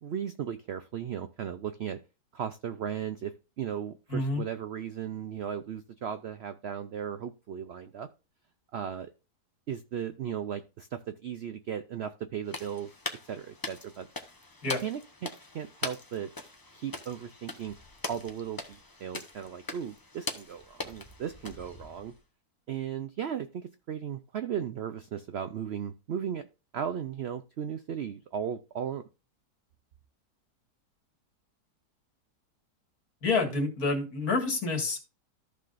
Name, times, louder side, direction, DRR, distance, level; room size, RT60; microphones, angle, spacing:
voice 1, 0.0-2.0 2.3-8.1 8.7-9.1 9.7-12.9 13.3-14.1 14.8-16.3 16.7-17.8 18.1-22.1 22.7-26.5 26.7-29.0, right 8 dB, 75° right, 10 dB, 0.6 m, -36 dB
voice 2, 4.1-4.4 14.6-14.8 33.2-35.0, left 3 dB, 65° left, 2 dB, 2.4 m, -28 dB
sound 1, 12.5-22.2, left 2 dB, 20° left, 0.6 m, -41 dB
14.0 x 5.7 x 2.5 m, 0.31 s
omnidirectional pair, 1.7 m